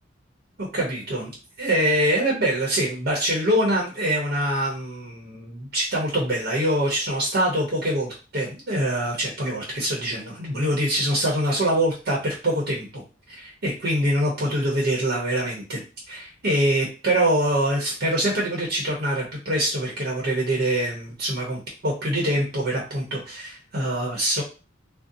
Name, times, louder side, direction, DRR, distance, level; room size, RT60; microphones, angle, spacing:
voice 1, 0.6-1.3 1.6-13.0 13.3-15.8 16.1-24.4, right 1 dB, 55° right, -2 dB, 0.8 m, -24 dB
2.6 x 2.0 x 3.8 m, 0.32 s
head